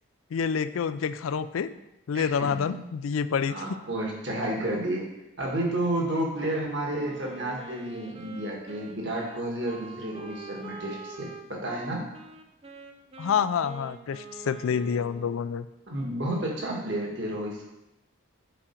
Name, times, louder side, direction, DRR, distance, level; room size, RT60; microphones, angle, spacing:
voice 1, 0.3-1.7 2.1-3.5 13.2-15.7, left 6 dB, 80° left, 14 dB, 0.4 m, -27 dB
voice 2, 2.1-2.8 3.5-5.1 5.4-12.0 15.9-17.6, right 1 dB, 55° right, -1 dB, 1.6 m, -31 dB
Wind instrument woodwind instrument, 7.0-15.4, right 3 dB, 25° right, 0.5 m, -45 dB
7.1 x 5.0 x 4.4 m, 0.89 s
head